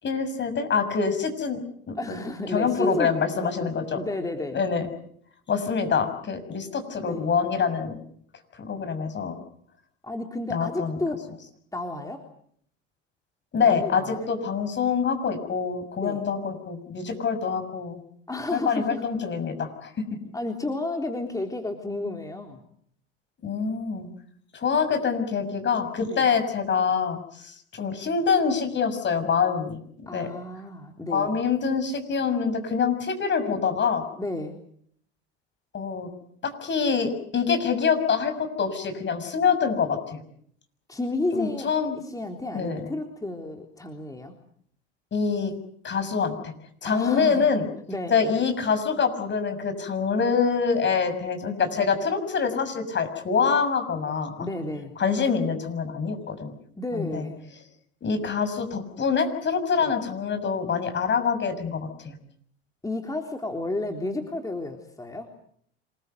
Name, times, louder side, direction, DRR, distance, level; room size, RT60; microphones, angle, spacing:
voice 1, 0.0-1.6 1.9-2.0 2.5-4.0 4.5-4.9 5.5-8.0 8.6-9.3 10.5-11.0 13.5-18.0 18.5-19.9 23.4-24.1 24.5-30.3 31.1-34.0 35.7-36.1 36.4-40.2 41.3-42.0 42.5-42.9 45.1-45.5 45.8-46.5 46.8-47.6 48.1-54.5 55.0-56.5 56.9-57.2 58.0-62.1, left 6 dB, 35° left, 9 dB, 6.6 m, -25 dB
voice 2, 1.9-4.6 7.0-7.3 10.0-11.2 11.7-12.2 13.6-14.3 16.0-16.2 18.3-19.0 20.3-22.6 26.1-26.3 30.1-31.3 34.2-34.5 40.9-44.3 46.9-47.4 47.9-48.2 54.4-54.9 56.8-57.5 59.8-59.9 62.8-65.3, left 2 dB, 10° left, 4 dB, 3.6 m, -32 dB
27.0 x 21.0 x 8.1 m, 0.65 s
hypercardioid pair, 85°, 31 cm